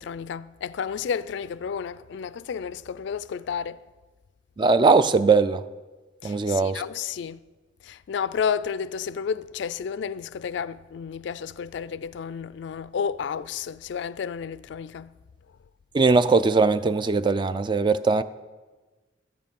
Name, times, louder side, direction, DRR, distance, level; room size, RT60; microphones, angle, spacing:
voice 1, 0.0-3.8 6.2-7.4 7.8-15.1, left 7 dB, 65° left, 0.3 m, -31 dB
voice 2, 4.6-5.6 6.2-6.8 15.9-18.2, right 4 dB, 25° right, 0.3 m, -20 dB
12.5 x 9.0 x 5.3 m
head